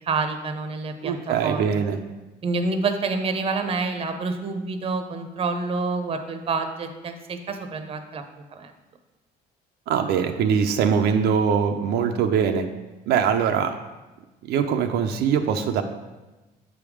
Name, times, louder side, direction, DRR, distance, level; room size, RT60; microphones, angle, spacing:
voice 1, 0.0-1.8 2.4-8.2 8.5-8.7, right 4 dB, 35° right, 7 dB, 0.7 m, -28 dB
voice 2, 1.0-2.0 9.9-12.7 13.1-13.7 14.4-15.8, right 7 dB, 80° right, 5 dB, 0.5 m, -22 dB
7.5 x 3.5 x 4.9 m, 1.1 s
cardioid pair, 110°, 17 cm